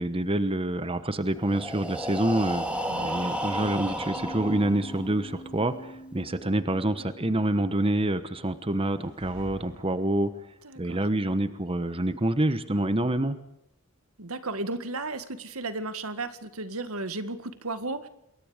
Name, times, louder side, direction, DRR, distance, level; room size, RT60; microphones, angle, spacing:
voice 1, 0.0-2.6 3.0-10.3 10.8-13.4, right 1 dB, 25° right, 11 dB, 1.2 m, -27 dB
Breathing, 1.4-5.2, equal, 5° right, 3.4 m, -32 dB
Mallet percussion, 4.1-8.9, right 1 dB, 50° left, 2.5 m, -46 dB
sound 1, 9.0-10.6, equal, 60° right, 7.2 m, -48 dB
voice 2, 10.6-11.0 14.2-18.1, right 2 dB, 80° right, 11 dB, 1.9 m, -34 dB
28.5 x 21.5 x 5.1 m, 0.78 s
head